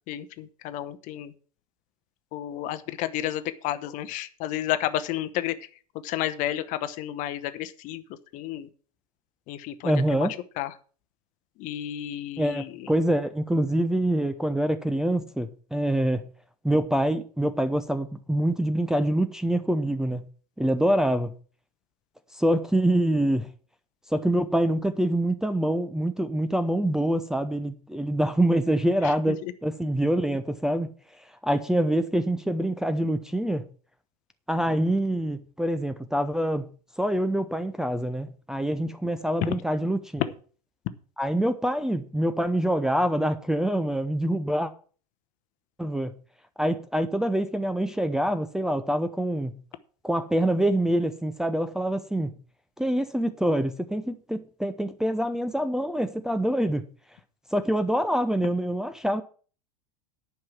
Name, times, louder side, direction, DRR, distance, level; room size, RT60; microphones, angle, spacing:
voice 1, 0.1-1.3 2.3-5.5 6.0-8.0 8.3-8.7 9.5-10.3 10.6-10.7 11.6-12.9 29.0-29.5 39.4-39.6, left 13 dB, 40° left, 1.0 m, -31 dB
voice 2, 9.8-10.3 12.4-16.3 16.6-20.3 20.6-21.3 22.3-23.5 24.1-30.9 31.4-33.6 34.5-36.7 37.0-40.2 41.2-44.7 45.8-46.1 46.6-49.5 50.0-52.3 52.8-56.8 57.5-59.2, right 1 dB, 5° right, 0.7 m, -25 dB
10.5 x 5.9 x 7.3 m
figure-of-eight pair, 90°, 20 cm